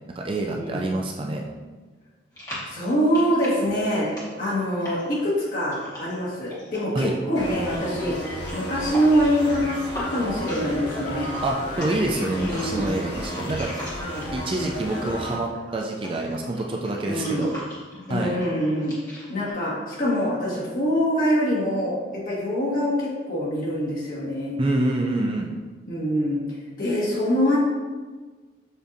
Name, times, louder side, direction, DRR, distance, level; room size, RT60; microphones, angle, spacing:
voice 1, 0.1-1.4 6.9-7.1 11.4-13.7 14.3-17.5 18.1-18.4 24.6-25.5, right 2 dB, 30° right, 1 dB, 0.3 m, -26 dB
sound 1, 2.3-14.5 14.8-19.5, equal, 20° left, 1.2 m, -40 dB
voice 2, 2.7-4.1 4.4-11.3 12.3-12.9 14.0-14.3 17.0-17.5 18.1-18.9 19.3-24.6 25.9-27.6, equal, 50° left, -7 dB, 1.5 m, -24 dB
sound 2, 7.3-15.3, equal, 75° left, 1.1 m, -33 dB
6.9 x 2.7 x 2.6 m, 1.3 s
head